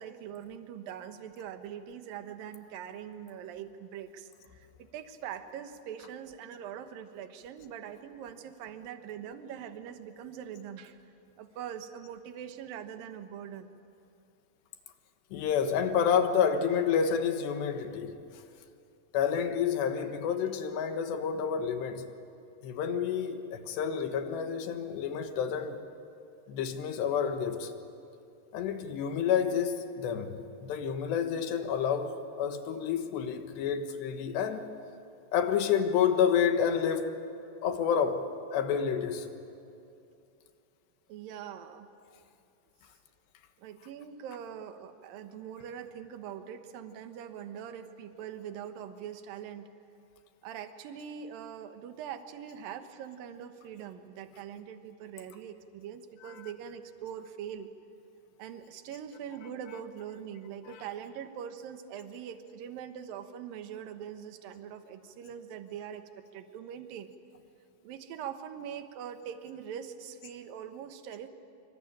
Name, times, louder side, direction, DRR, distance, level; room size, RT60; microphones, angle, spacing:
voice 1, 0.0-11.0 11.4-13.8 41.1-41.9 43.6-49.7 50.4-57.7 58.4-67.1 67.8-71.3, right 9 dB, 65° right, 2.7 m, -43 dB
voice 2, 15.3-18.1 19.1-22.1 22.6-25.8 26.5-27.7 28.5-30.4 30.6-32.1 32.4-34.6 35.3-37.2 37.6-38.2 38.5-39.3 56.2-56.5 59.3-59.4 59.7-59.8 60.6-60.9, left 7 dB, 80° left, 3.6 m, -29 dB
26.0 x 26.0 x 8.9 m
omnidirectional pair, 4.9 m